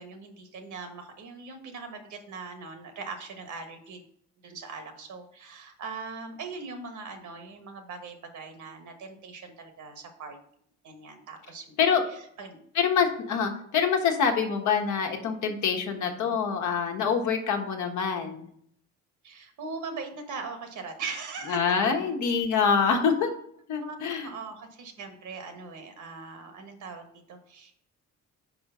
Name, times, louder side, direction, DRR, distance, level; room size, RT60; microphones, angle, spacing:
voice 1, 0.0-4.0 4.4-10.4 10.8-11.7 12.1-12.6 19.2-21.6 23.8-24.0 24.2-27.7, right 4 dB, 75° right, 6 dB, 1.4 m, -40 dB
voice 2, 12.7-18.5 21.5-23.3 23.7-24.3, left 6 dB, 80° left, 3 dB, 1.3 m, -25 dB
4.9 x 4.8 x 5.5 m, 0.67 s
cardioid pair, 90°, 30 cm